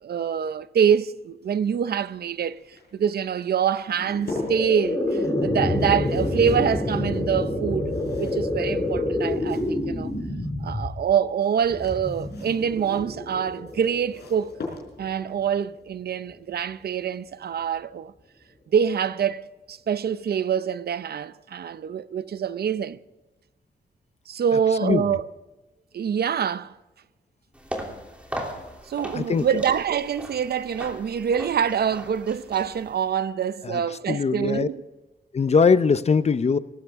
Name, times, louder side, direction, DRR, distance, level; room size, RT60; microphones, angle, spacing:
voice 1, 0.0-2.6 2.9-10.1 10.6-14.5 15.0-18.1 18.7-23.0 24.3-25.3 25.9-26.7 28.9-34.8, right 8 dB, 65° right, 0.6 m, -25 dB
sound 1, 1.4-10.2 11.4-15.3 16.9-17.2 17.5-17.6, left 3 dB, 70° left, 4.7 m, -42 dB
sound 2, 3.9-15.1, left 1 dB, 20° left, 2.6 m, -28 dB
sound 3, 27.5-33.2, equal, 5° right, 3.0 m, -38 dB
voice 2, 29.1-29.5 33.6-33.8 34.1-34.7 35.3-36.6, left 5 dB, 40° left, 0.6 m, -21 dB
18.5 x 15.0 x 3.6 m
wide cardioid pair, 115°, 18 cm